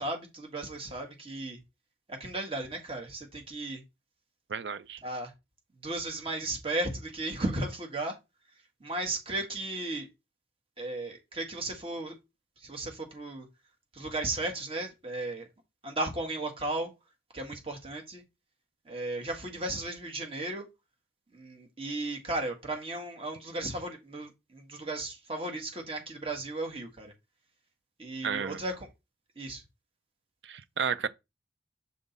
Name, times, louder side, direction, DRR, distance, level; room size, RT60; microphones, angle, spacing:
voice 1, 0.0-1.6 2.1-3.8 5.0-5.3 5.8-8.2 8.8-10.1 10.8-12.1 12.6-13.5 13.9-15.5 15.8-16.9 17.3-18.2 18.9-20.6 21.3-27.1 28.0-28.9 29.3-29.6, right 2 dB, 30° right, 1.6 m, -35 dB
voice 2, 4.5-5.0 28.2-28.6 30.4-31.1, right 6 dB, 85° right, 0.5 m, -32 dB
7.0 x 3.7 x 4.0 m
head